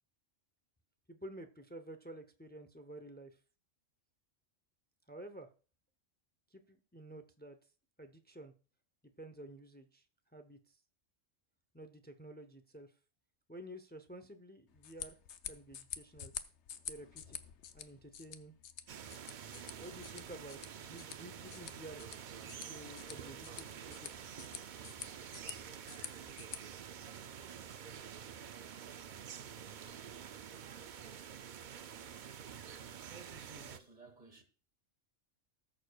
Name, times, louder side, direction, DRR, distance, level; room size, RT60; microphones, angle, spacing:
voice 1, 1.1-3.4 5.1-5.5 6.5-7.6 8.0-8.5 9.2-10.0 10.3-10.8 11.7-12.9 13.5-15.2 15.5-16.3 16.9-17.4 17.7-18.5 19.8-22.1 22.4-24.3, right 1 dB, 15° left, 0.4 m, -51 dB
sound 1, 14.7-26.6, left 8 dB, 70° left, 0.9 m, -49 dB
sound 2, 18.9-33.8, right 8 dB, 55° right, 0.5 m, -48 dB
sound 3, 19.4-25.4, right 3 dB, 20° right, 1.8 m, -66 dB
voice 2, 33.0-34.4, right 4 dB, 35° right, 1.7 m, -55 dB
19.0 x 6.5 x 2.3 m
omnidirectional pair, 1.3 m